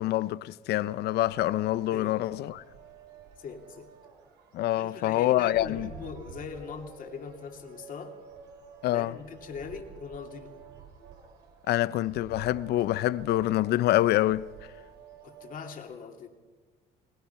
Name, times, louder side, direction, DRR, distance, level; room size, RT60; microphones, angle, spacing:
voice 1, 0.0-2.6 4.5-5.9 8.8-9.2 11.7-14.5, left 15 dB, 75° left, 0.7 m, -26 dB
sound 1, 0.7-15.8, right 7 dB, 80° right, 4.2 m, -50 dB
voice 2, 3.4-3.9 4.8-8.2 8.9-10.6 15.2-16.3, left 6 dB, 55° left, 2.8 m, -41 dB
23.5 x 20.0 x 5.8 m
cardioid pair, 110°, 17 cm